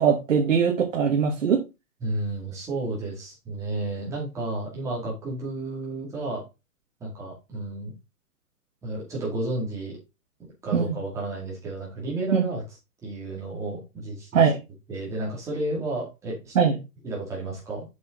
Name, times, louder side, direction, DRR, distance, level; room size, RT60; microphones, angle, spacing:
voice 1, 0.0-1.6 10.7-11.0 12.3-12.5 14.3-14.6 16.6-16.8, right 7 dB, 55° right, 1.7 m, -21 dB
voice 2, 2.0-6.4 7.0-7.9 8.8-10.0 10.6-12.6 13.0-14.4 14.9-16.6 17.0-17.9, right 2 dB, 5° right, 2.2 m, -32 dB
7.3 x 6.1 x 3.8 m
hypercardioid pair, 175°, 46 cm